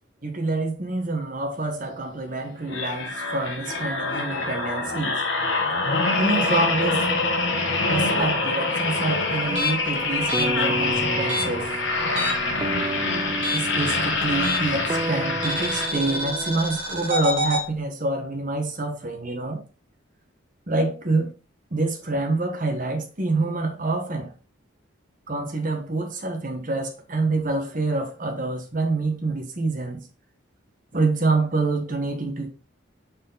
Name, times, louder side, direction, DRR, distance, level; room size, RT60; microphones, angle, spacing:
voice 1, 0.2-5.2 6.2-7.1 7.9-11.7 13.5-19.6 20.7-21.3 21.7-24.3 25.3-30.0 30.9-32.5, right 2 dB, 40° right, 1.1 m, -26 dB
sound 1, 2.7-16.3 16.8-17.0, left 3 dB, 60° left, 1.4 m, -25 dB
sound 2, 6.4-16.6, right 2 dB, 20° right, 0.4 m, -33 dB
sound 3, 9.4-12.6 12.8-14.9 15.4-17.6, equal, 70° right, 1.8 m, -29 dB
6.2 x 4.3 x 3.9 m
head